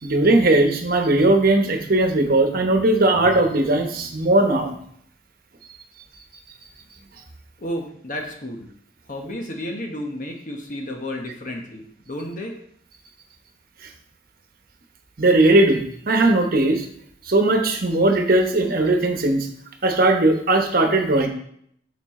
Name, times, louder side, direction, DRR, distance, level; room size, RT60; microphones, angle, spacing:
voice 1, 0.0-4.7 15.2-16.9 17.3-19.5 19.8-21.3, right 2 dB, 55° right, 4 dB, 1.1 m, -18 dB
voice 2, 7.6-8.7 9.1-12.5, left 1 dB, 45° left, 2 dB, 1.1 m, -32 dB
7.3 x 6.1 x 3.7 m, 0.66 s
head